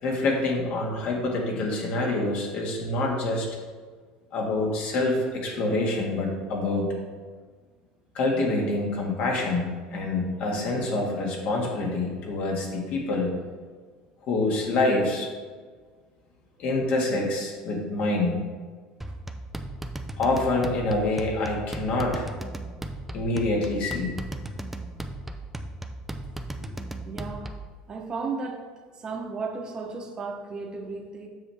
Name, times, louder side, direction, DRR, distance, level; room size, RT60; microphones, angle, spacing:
voice 1, 0.0-3.5 4.3-6.9 8.1-13.3 14.2-15.3 16.6-18.4 20.2-22.3 23.1-24.1, left 2 dB, 55° left, 0 dB, 1.8 m, -26 dB
sound 1, 19.0-27.7, right 1 dB, 5° right, 0.5 m, -36 dB
voice 2, 27.0-27.5 27.9-28.6 29.0-31.3, right 4 dB, 30° right, 3 dB, 1.1 m, -34 dB
7.6 x 6.2 x 3.5 m, 1.5 s
supercardioid pair, 120°, 3 cm